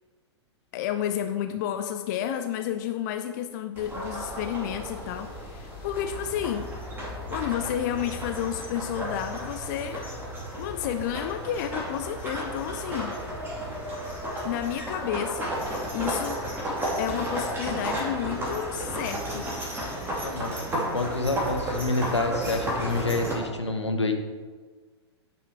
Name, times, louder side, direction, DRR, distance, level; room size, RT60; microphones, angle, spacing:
voice 1, 0.7-6.7 7.3-10.1 10.6-13.2 14.4-16.4 17.0-19.5, left 10 dB, 40° left, 8 dB, 0.5 m, -31 dB
sound 1, 3.8-23.3, equal, 15° right, 2.7 m, -33 dB
voice 2, 20.2-24.1, left 2 dB, 80° left, 6 dB, 1.1 m, -28 dB
10.5 x 5.9 x 4.7 m, 1.5 s
figure-of-eight pair, 100°, 14 cm